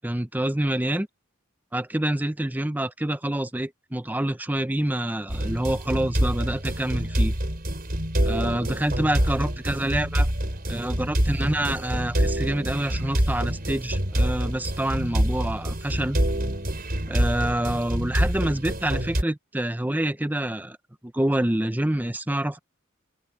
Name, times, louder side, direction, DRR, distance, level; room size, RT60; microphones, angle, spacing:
voice 1, 0.0-1.1 1.7-7.3 8.2-10.3 10.7-16.2 17.1-20.8 21.1-22.6, right 1 dB, 10° right, 0.6 m, -27 dB
sound 1, 5.3-19.2, equal, 50° right, 4.9 m, -26 dB
open air
head